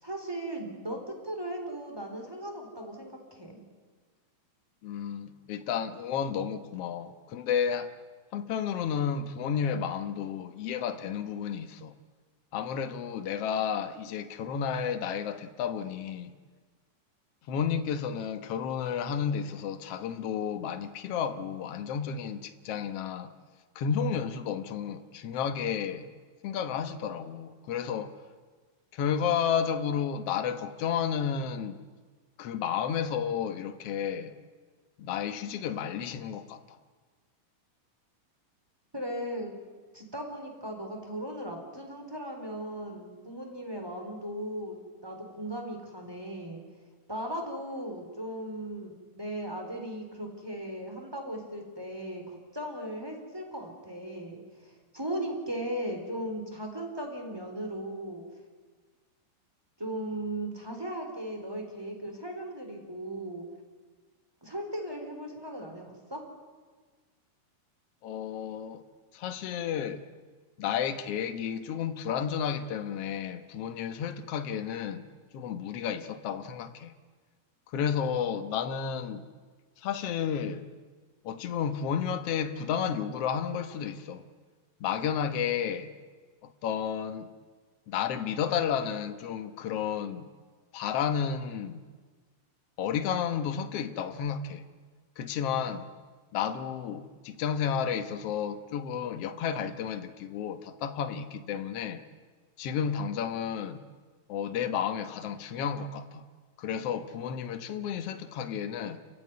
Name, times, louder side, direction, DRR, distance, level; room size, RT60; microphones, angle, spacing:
voice 1, 0.0-3.6 38.9-39.5 39.9-46.6 47.1-58.2 59.8-63.4 64.4-66.2, right 1 dB, 5° right, 3.5 m, -37 dB
voice 2, 4.8-7.9 8.3-11.9 12.5-16.3 17.5-23.3 23.7-26.1 26.4-28.1 28.9-31.8 32.4-34.4 35.0-36.8 68.0-68.8 69.1-70.1 70.6-75.1 75.3-76.9 77.7-79.3 79.8-80.7 81.2-84.2 84.8-85.9 86.4-87.3 87.9-90.2 90.7-91.8 92.8-94.6 95.2-95.9 96.3-102.0 102.6-103.8 104.3-106.3 106.6-109.0, left 7 dB, 75° left, 1.4 m, -32 dB
29.0 x 15.5 x 9.6 m
omnidirectional pair, 4.4 m